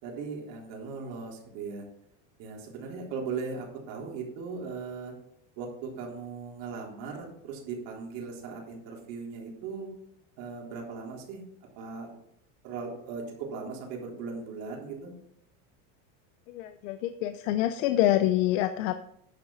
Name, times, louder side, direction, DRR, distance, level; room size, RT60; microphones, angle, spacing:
voice 1, 0.0-1.9 2.4-5.1 5.6-9.9 10.4-11.4 11.8-12.1 12.6-15.1, right 5 dB, 60° right, -1 dB, 3.8 m, -38 dB
voice 2, 16.5-18.9, left 13 dB, 85° left, 10 dB, 0.8 m, -26 dB
10.5 x 7.3 x 5.7 m, 0.72 s
cardioid pair, 165°, 38 cm